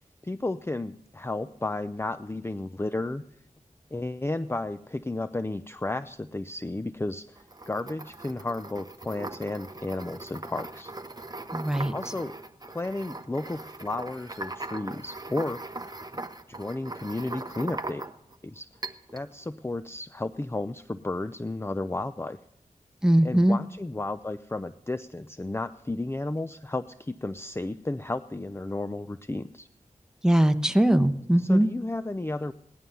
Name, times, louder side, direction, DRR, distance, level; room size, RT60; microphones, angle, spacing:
voice 1, 0.2-3.2 3.9-10.9 11.9-12.4 12.7-15.6 16.5-18.0 18.4-18.7 19.1-22.4 23.2-29.7 31.4-32.5, left 2 dB, 20° left, 11 dB, 0.5 m, -33 dB
sound 1, 7.4-18.4 18.8-19.3, right 2 dB, 30° right, 1.0 m, -40 dB
voice 2, 11.5-11.9 23.0-23.6 30.2-31.7, right 1 dB, 5° right, 8 dB, 1.2 m, -21 dB
18.0 x 11.5 x 5.6 m, 0.74 s
wide cardioid pair, 50°, 14 cm